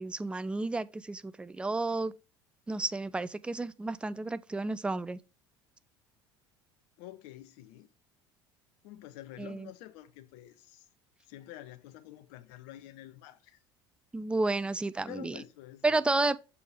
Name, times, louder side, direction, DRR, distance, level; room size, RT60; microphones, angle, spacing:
voice 1, 0.0-2.1 2.7-5.2 9.4-9.7 14.1-15.4 15.8-16.4, right 2 dB, 10° right, 0.3 m, -31 dB
voice 2, 7.0-7.9 8.8-10.9 11.3-13.6 15.0-16.0, left 14 dB, 60° left, 0.7 m, -48 dB
7.0 x 4.5 x 3.4 m
figure-of-eight pair, 65°, 13 cm